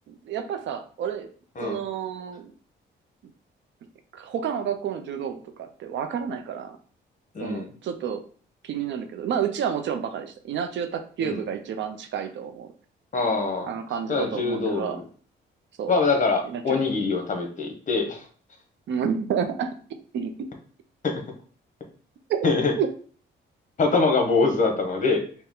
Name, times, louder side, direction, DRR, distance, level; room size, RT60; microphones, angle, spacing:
voice 1, 0.1-1.3 1.6-2.5 4.1-6.8 7.4-8.2 8.6-12.7 13.7-15.0 15.8-16.0 16.4-16.8 18.9-19.8 20.1-20.5 22.3-22.4 22.8-22.9, right 8 dB, 70° right, 8 dB, 0.6 m, -30 dB
voice 2, 7.3-7.7 11.2-11.4 13.1-13.7 14.1-15.0 15.9-18.2 21.0-21.1 22.4-22.7 23.8-25.2, left 4 dB, 40° left, 3 dB, 1.1 m, -23 dB
4.4 x 2.2 x 3.6 m, 0.43 s
cardioid pair, 90°, 20 cm